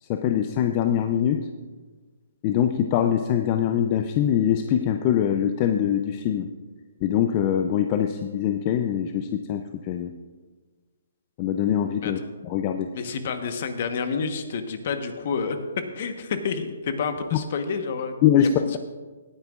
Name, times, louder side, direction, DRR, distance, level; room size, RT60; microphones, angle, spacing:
voice 1, 0.0-1.5 2.4-6.5 7.0-10.1 11.4-12.9 17.3-17.4 18.2-18.8, left 9 dB, 30° left, 7 dB, 0.4 m, -23 dB
voice 2, 12.9-15.6 15.9-18.1 18.4-18.8, left 5 dB, 45° left, 7 dB, 1.1 m, -29 dB
18.5 x 9.4 x 2.5 m, 1.4 s
hypercardioid pair, 160°, 0 cm